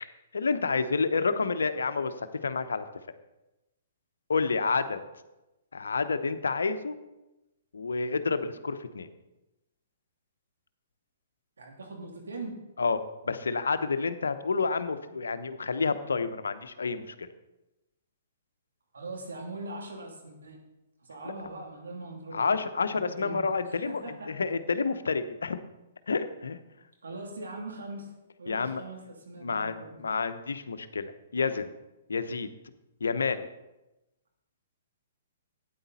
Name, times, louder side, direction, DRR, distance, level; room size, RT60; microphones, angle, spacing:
voice 1, 0.3-2.9 4.3-5.0 5.7-7.0 7.7-9.1 12.8-13.0 13.2-17.3 22.3-25.6 26.1-26.6 28.5-28.8 29.4-31.7 32.1-32.5 33.0-33.5, left 4 dB, 80° left, 11 dB, 0.8 m, -29 dB
voice 2, 11.6-12.6 18.9-20.6 21.1-23.4 23.7-24.3 27.0-28.1 28.4-30.0, right 2 dB, 80° right, 0 dB, 3.0 m, -41 dB
12.5 x 9.3 x 4.2 m, 1.0 s
hypercardioid pair, 125°, 0 cm